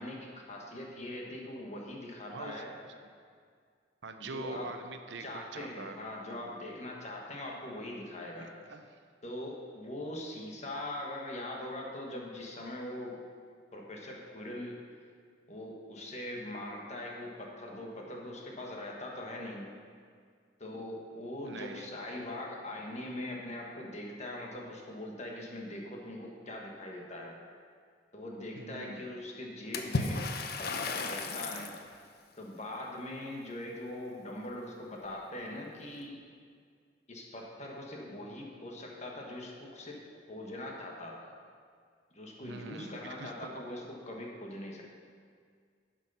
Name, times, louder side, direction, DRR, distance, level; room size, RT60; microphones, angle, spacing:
voice 1, 0.0-2.7 4.2-4.8 5.2-8.5 9.2-13.2 13.7-14.8 15.5-19.7 20.6-27.4 28.1-30.2 30.6-31.7 32.4-36.2 37.1-40.0 40.3-41.3 42.1-44.8, left 1 dB, 40° left, -1 dB, 1.5 m, -41 dB
voice 2, 2.3-2.6 4.0-6.0 6.2-6.5 8.4-8.9 21.4-21.9 28.6-29.0 31.5-31.8 42.4-43.5, right 3 dB, 75° right, 7 dB, 0.7 m, -44 dB
Water / Splash splatter, 29.7-31.8, left 3 dB, 60° left, 0.7 m, -34 dB
11.0 x 6.1 x 5.6 m, 2.1 s
head